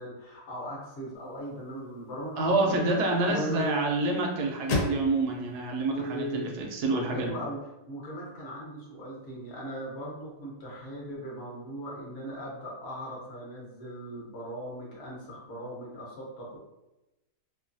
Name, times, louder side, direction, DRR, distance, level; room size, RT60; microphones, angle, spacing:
voice 1, 0.0-3.9 5.9-6.5 7.1-7.6 7.9-16.6, right 1 dB, 45° left, -4 dB, 0.9 m, -38 dB
sound 1, 1.1-7.3, left 3 dB, 90° left, 1.2 m, -39 dB
voice 2, 2.4-7.3, right 2 dB, 70° right, 1 dB, 1.0 m, -27 dB
3.0 x 2.2 x 2.5 m, 0.95 s
omnidirectional pair, 1.9 m